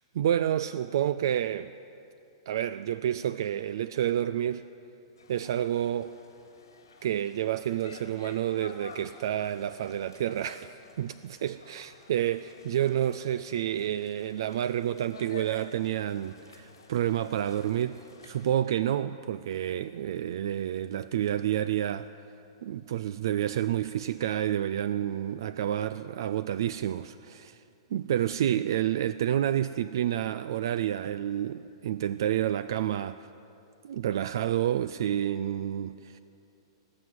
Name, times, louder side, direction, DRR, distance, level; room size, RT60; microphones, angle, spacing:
voice 1, 0.0-1.7 2.5-4.7 5.3-6.1 7.0-22.1 22.6-27.6 27.9-33.3 33.8-36.2, right 11 dB, 65° right, 0.4 m, -29 dB
sound 1, 5.2-18.5, left 4 dB, 90° left, 2.7 m, -51 dB
19.5 x 7.6 x 9.7 m
hypercardioid pair, 110°, 2 cm